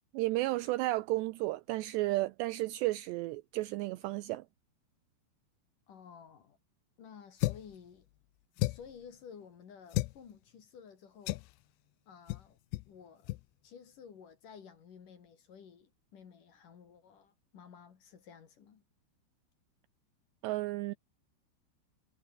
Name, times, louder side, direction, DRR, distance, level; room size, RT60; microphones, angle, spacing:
voice 1, 0.1-4.4 20.4-20.9, right 18 dB, 85° right, 2.5 m, -33 dB
voice 2, 5.9-6.6 7.0-8.1 8.6-11.4 12.1-12.6 12.9-13.3 13.6-18.8, left 7 dB, 50° left, 3.6 m, -53 dB
sound 1, 7.4-7.8 8.6-9.0 9.9-10.2 11.3-11.5 12.3-12.5 12.7-12.9 13.2-13.4, left 21 dB, 85° left, 2.6 m, -33 dB
omnidirectional pair, 5.6 m